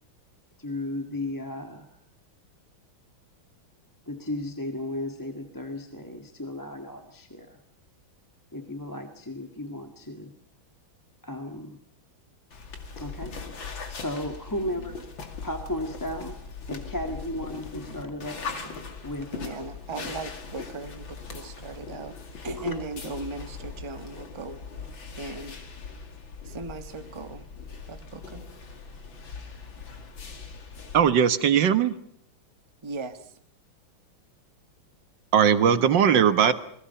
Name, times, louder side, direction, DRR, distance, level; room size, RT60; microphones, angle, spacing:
voice 1, 0.6-1.9 4.1-7.6 8.5-10.4 11.2-11.8 13.0-15.0 15.4-16.4 16.7-18.5 19.0-19.6 20.0-20.1 22.6-22.7, left 1 dB, 10° left, 5 dB, 1.6 m, -35 dB
sound 1, 12.5-31.0, left 5 dB, 75° left, 3.2 m, -40 dB
voice 2, 14.6-14.9 19.3-22.2 22.4-24.6 25.2-25.6 26.4-27.5 27.9-28.5 32.8-33.3, right 3 dB, 15° right, 7 dB, 1.1 m, -38 dB
voice 3, 30.9-31.9 35.3-36.5, right 8 dB, 65° right, 11 dB, 1.9 m, -19 dB
28.0 x 21.5 x 5.7 m, 0.65 s
omnidirectional pair, 2.2 m